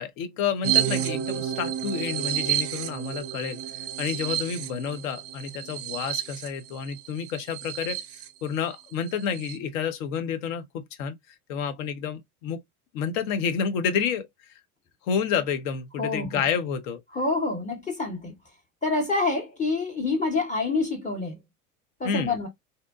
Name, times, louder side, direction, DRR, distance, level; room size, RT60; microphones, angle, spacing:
voice 1, 0.0-8.0 8.4-11.2 11.5-12.6 12.9-14.3 15.0-17.0 22.0-22.4, left 7 dB, 60° left, 0.6 m, -29 dB
sound 1, 0.6-8.3 8.7-8.8 9.1-9.6, right 11 dB, 35° right, 0.5 m, -30 dB
voice 2, 16.0-16.5 17.1-18.4 18.8-21.4 22.0-22.5, left 3 dB, 15° left, 0.7 m, -27 dB
2.7 x 2.1 x 2.2 m
hypercardioid pair, 80°, 45 cm